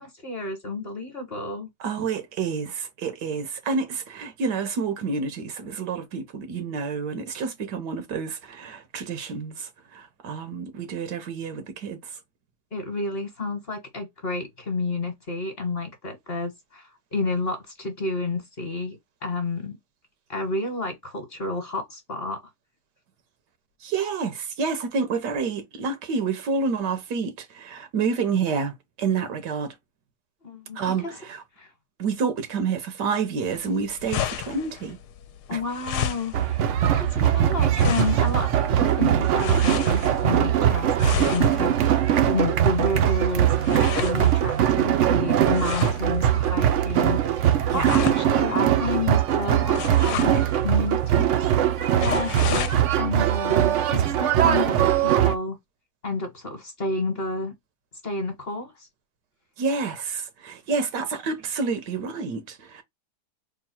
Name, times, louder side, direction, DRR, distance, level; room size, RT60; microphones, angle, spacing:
voice 1, 0.0-1.7 12.7-19.8 20.3-22.4 30.4-31.1 31.6-31.7 35.5-36.6 36.9-47.2 47.7-51.4 52.0-55.6 56.0-57.5 58.0-58.9, left 3 dB, 40° left, 1.2 m, -30 dB
voice 2, 1.8-12.1 23.8-29.7 30.7-31.4 32.0-35.0 35.5-35.6 47.7-47.9 59.6-62.8, right 5 dB, 85° right, 1.6 m, -29 dB
Cloth heavy movement, 33.5-52.8, left 10 dB, 80° left, 1.1 m, -34 dB
sound 1, 36.3-55.4, right 10 dB, 65° right, 0.7 m, -21 dB
3.7 x 2.2 x 4.2 m
omnidirectional pair, 1.8 m